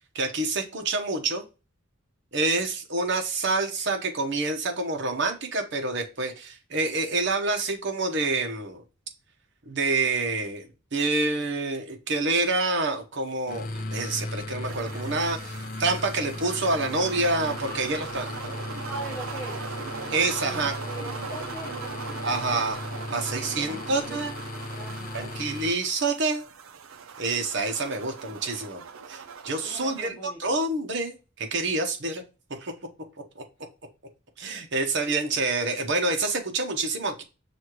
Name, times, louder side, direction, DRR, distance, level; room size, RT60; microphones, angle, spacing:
voice 1, 0.1-1.4 2.3-8.8 9.7-18.5 20.1-20.7 22.2-22.8 23.1-24.3 25.1-26.4 27.2-28.8 29.1-32.2 32.6-32.7 33.4-33.5 34.4-37.2, right 3 dB, 60° right, 0.9 m, -27 dB
sound 1, 13.5-25.7, left 2 dB, 45° left, 0.6 m, -37 dB
sound 2, 14.6-30.1, right 6 dB, 90° right, 0.5 m, -40 dB
voice 2, 18.9-19.6 20.4-22.1 23.6-24.3 24.7-25.5 28.2-28.4 29.6-30.5, right 1 dB, 15° left, 0.9 m, -41 dB
6.3 x 2.5 x 3.0 m
head